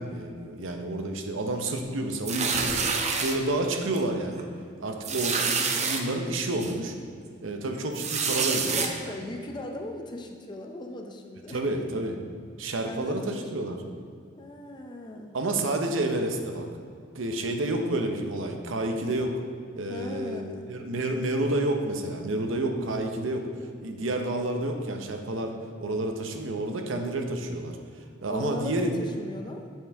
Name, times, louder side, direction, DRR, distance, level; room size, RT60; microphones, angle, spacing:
voice 1, 0.0-2.7 3.2-4.5 4.8-7.0 7.4-8.9 11.5-12.2 12.6-13.8 15.3-16.6 17.1-19.4 19.8-23.5 23.8-25.5 25.8-27.8 28.2-28.9, right 2 dB, 85° right, 4 dB, 0.7 m, -29 dB
sound 1, 2.3-3.4 4.0-4.1 4.4-4.5 5.0-6.0 6.6-6.7 7.9-8.9, right 5 dB, 35° right, 0.5 m, -27 dB
voice 2, 8.3-11.6 12.8-13.7 14.4-15.4 19.9-20.8 28.3-29.6, left 1 dB, 25° left, 3 dB, 0.5 m, -38 dB
7.3 x 5.4 x 3.4 m, 2.3 s
head